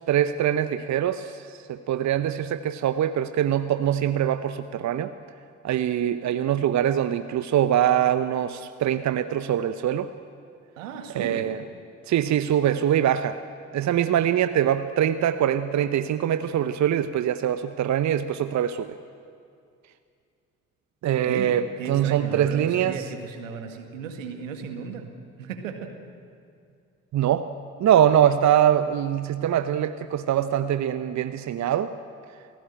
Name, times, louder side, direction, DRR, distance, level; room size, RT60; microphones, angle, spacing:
voice 1, 0.1-1.4 1.7-5.1 5.6-10.1 11.1-11.6 12.1-13.4 13.7-18.9 21.0-23.0 27.1-27.5 27.8-31.9, right 10 dB, 45° right, 11 dB, 0.9 m, -23 dB
voice 2, 10.8-11.5 21.1-25.1 25.4-25.9, right 6 dB, 80° right, 6 dB, 2.0 m, -35 dB
28.5 x 17.0 x 9.0 m, 2.4 s
figure-of-eight pair, 45°, 39 cm